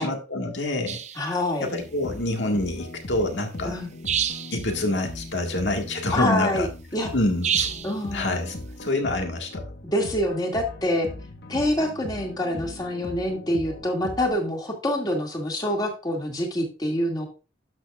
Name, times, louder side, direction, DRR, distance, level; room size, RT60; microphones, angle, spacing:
voice 1, 0.0-1.0 1.6-3.8 4.5-6.7 7.1-7.7 8.1-9.6, left 1 dB, 85° left, 3 dB, 1.8 m, -27 dB
sound 1, 0.9-1.2 4.1-4.6 7.4-8.0, right 8 dB, 40° right, 0.6 m, -27 dB
voice 2, 1.2-1.7 3.6-3.9 6.1-6.7 6.9-7.1 7.8-8.4 9.9-11.1 11.5-17.3, left 1 dB, 25° left, 0 dB, 2.2 m, -26 dB
sound 2, 1.8-14.4, left 1 dB, 60° left, 1.2 m, -39 dB
11.5 x 6.6 x 2.4 m, 0.31 s
head